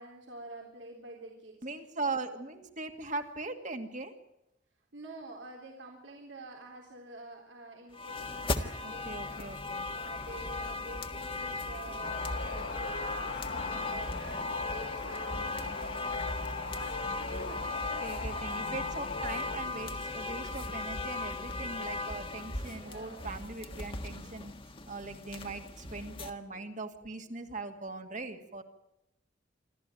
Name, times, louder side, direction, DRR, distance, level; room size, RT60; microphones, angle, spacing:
voice 1, 0.0-1.7 4.9-9.6 9.9-18.8 22.4-23.3, right 2 dB, 85° right, 0 dB, 3.8 m, -49 dB
voice 2, 1.6-4.2 8.8-9.9 18.0-24.5 24.9-28.6, right 3 dB, 45° right, 6 dB, 2.2 m, -40 dB
sound 1, 7.9-26.3, left 3 dB, 30° left, 1.6 m, -37 dB
sound 2, 12.0-19.6, left 4 dB, 55° left, 2.2 m, -39 dB
27.5 x 13.0 x 9.2 m, 0.86 s
head